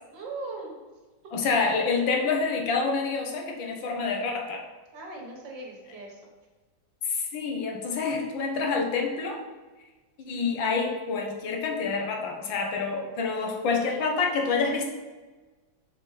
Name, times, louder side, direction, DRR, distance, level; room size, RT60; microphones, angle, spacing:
voice 1, 0.1-0.8 4.9-6.2, right 3 dB, 75° right, -1 dB, 2.2 m, -39 dB
voice 2, 1.3-4.6 7.0-9.4 10.3-14.9, left 4 dB, 90° left, 2 dB, 1.8 m, -27 dB
6.9 x 4.5 x 4.9 m, 1.2 s
omnidirectional pair, 2.0 m